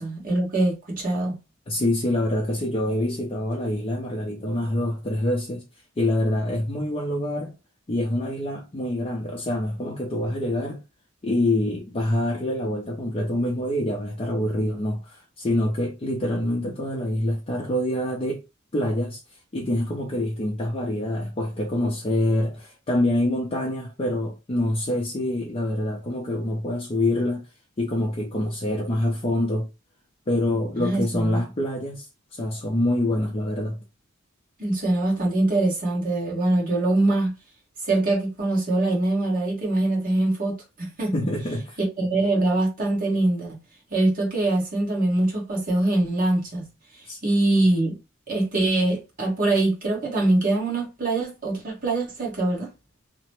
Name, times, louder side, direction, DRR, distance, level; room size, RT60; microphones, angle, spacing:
voice 1, 0.0-1.4 30.8-31.4 34.6-37.3 37.8-41.1 41.8-43.6 43.9-48.0 48.3-52.7, right 2 dB, 45° right, 1.2 m, -23 dB
voice 2, 1.7-5.6 6.0-7.5 7.9-10.8 11.2-18.4 18.7-19.2 19.5-27.4 27.8-29.7 30.3-33.8 41.1-41.8 47.1-47.2, left 1 dB, 30° left, 0.5 m, -26 dB
2.9 x 2.1 x 3.0 m
head